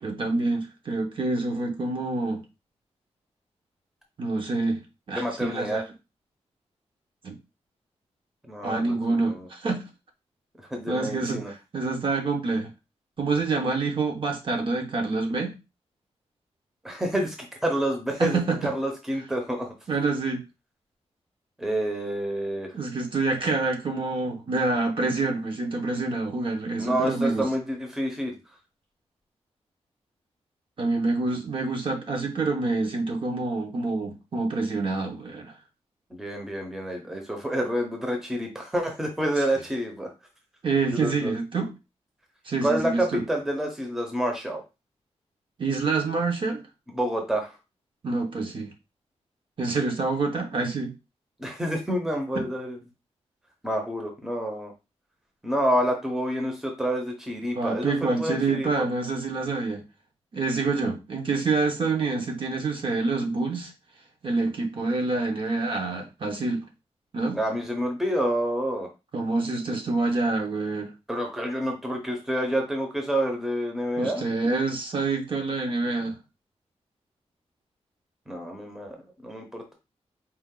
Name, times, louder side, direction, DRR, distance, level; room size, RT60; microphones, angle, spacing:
voice 1, 0.0-2.4 4.2-4.8 5.1-5.8 7.2-7.4 8.6-9.8 10.9-11.4 11.7-12.7 13.2-15.6 18.2-18.6 19.9-20.4 22.7-27.5 30.8-35.5 40.6-41.7 42.4-43.2 45.6-46.6 48.0-48.7 49.6-50.9 57.5-59.8 60.3-63.7 64.2-66.6 67.1-67.4 69.1-70.9 74.0-76.2, right 3 dB, 50° right, 2 dB, 1.0 m, -27 dB
voice 2, 5.1-5.8 8.4-9.5 10.6-11.5 16.8-19.7 21.6-22.8 26.8-28.4 36.1-40.1 40.9-41.3 42.6-44.6 46.9-47.6 51.4-52.8 53.6-54.7 55.4-58.9 67.3-68.9 71.1-74.2 78.3-79.0 79.2-79.7, equal, 5° right, 2 dB, 0.8 m, -28 dB
4.5 x 2.5 x 3.7 m, 0.27 s
wide cardioid pair, 170°, 11 cm